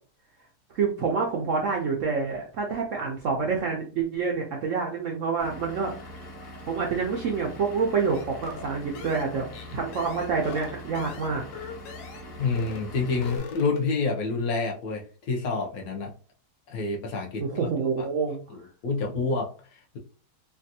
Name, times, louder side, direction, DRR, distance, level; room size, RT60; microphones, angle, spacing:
voice 1, 0.7-6.0 6.7-9.5 9.7-11.4 17.4-18.4, right 5 dB, 75° right, 0 dB, 0.7 m, -27 dB
Vehicle / Engine, 5.4-13.4, left 1 dB, 40° left, 1.1 m, -43 dB
sound 1, 8.1-12.3 12.6-12.9 13.1-14.0, left 6 dB, 85° left, 1.3 m, -41 dB
voice 2, 12.4-16.1 16.7-17.7 18.5-20.0, left 4 dB, 65° left, 1 dB, 1.0 m, -28 dB
3.4 x 2.3 x 2.6 m, 0.38 s
omnidirectional pair, 1.9 m